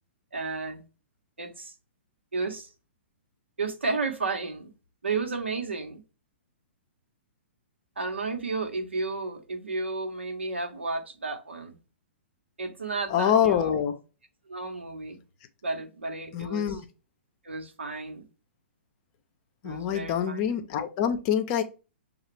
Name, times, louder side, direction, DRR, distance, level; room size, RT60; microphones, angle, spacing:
voice 1, 0.3-0.8 1.4-1.7 2.3-2.7 3.6-4.7 5.0-6.0 8.0-11.8 12.6-13.8 14.5-15.2 15.6-16.8 17.4-18.3 19.6-20.5, right 3 dB, 80° right, 1.1 m, -32 dB
voice 2, 13.1-13.9 16.3-16.8 19.6-21.6, left 9 dB, 35° left, 0.6 m, -25 dB
6.4 x 2.4 x 3.1 m
figure-of-eight pair, 115°, 6 cm